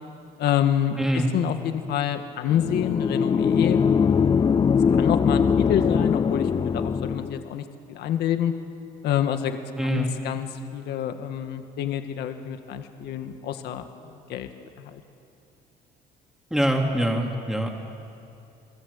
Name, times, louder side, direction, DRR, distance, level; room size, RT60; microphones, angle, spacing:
voice 1, 0.4-1.0 1.3-3.8 4.2-4.6 5.0-8.5 9.0-14.5 14.8-15.0, left 10 dB, 75° left, 7 dB, 1.8 m, -28 dB
voice 2, 1.0-1.3 9.8-10.1 16.5-17.7, equal, 5° right, 0 dB, 3.2 m, -24 dB
sound 1, 2.5-7.4, left 6 dB, 30° left, 0.5 m, -21 dB
29.5 x 21.0 x 8.7 m, 2.6 s
cardioid pair, 110°, 17 cm